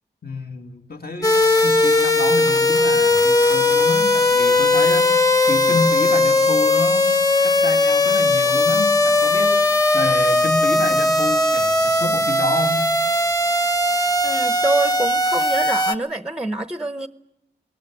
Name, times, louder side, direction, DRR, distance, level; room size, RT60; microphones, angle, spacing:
voice 1, 0.2-5.1 5.5-7.1 7.4-9.6 9.9-12.8, left 2 dB, 50° left, 4 dB, 2.7 m, -29 dB
sound 1, 1.2-16.0, left 2 dB, 20° left, 1.5 m, -18 dB
voice 2, 14.2-17.1, right 2 dB, 5° right, 11 dB, 0.8 m, -25 dB
20.0 x 19.5 x 9.8 m, 0.84 s
wide cardioid pair, 90°, 20 cm